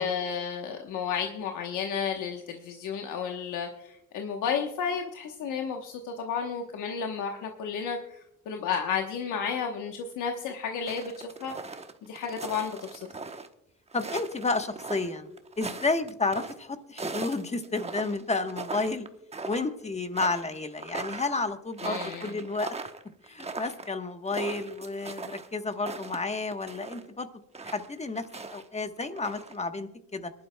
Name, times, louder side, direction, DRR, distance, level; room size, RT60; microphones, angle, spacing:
voice 1, 0.0-11.5 12.0-13.1 21.8-22.4, left 6 dB, 85° left, 3 dB, 1.1 m, -32 dB
sound 1, 10.9-13.5 13.9-16.5 17.0-19.1 19.3-19.8 20.1-27.0 27.5-28.6 29.0-29.5, right 3 dB, 20° right, 0.9 m, -39 dB
voice 2, 13.9-15.3 15.6-19.1 19.4-22.7 23.2-27.3 27.6-28.2 28.5-30.3, left 3 dB, 20° left, 8 dB, 1.1 m, -31 dB
26.0 x 11.5 x 2.2 m, 0.84 s
cardioid pair, 90°, 30 cm